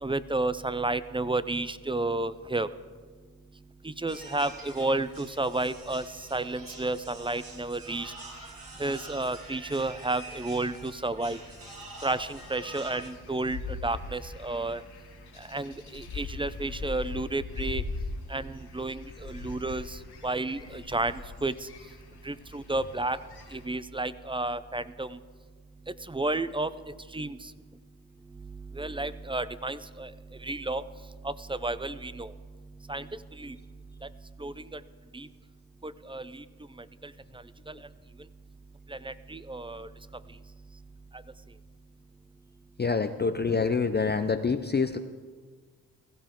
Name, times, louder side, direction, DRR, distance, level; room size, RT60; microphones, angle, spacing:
voice 1, 0.0-2.7 3.8-6.0 6.3-8.1 8.8-11.4 12.0-14.8 15.5-17.8 18.3-21.7 22.2-23.2 23.5-25.2 26.1-26.7 27.1-27.5 28.7-30.1 30.4-30.8 31.2-32.3 32.9-33.1 33.4-33.6 34.4-34.8 35.1-35.3 35.8-36.4 37.0-37.1 37.7-37.8 38.9-39.9, right 2 dB, 15° right, 14 dB, 0.5 m, -31 dB
sound 1, 4.1-13.1, right 2 dB, 55° right, 4.1 m, -46 dB
sound 2, 11.3-23.6, left 3 dB, 70° left, 1.9 m, -41 dB
voice 2, 42.8-45.0, left 4 dB, 25° left, 8 dB, 0.6 m, -26 dB
16.5 x 15.0 x 3.8 m, 1.5 s
cardioid pair, 60°, 39 cm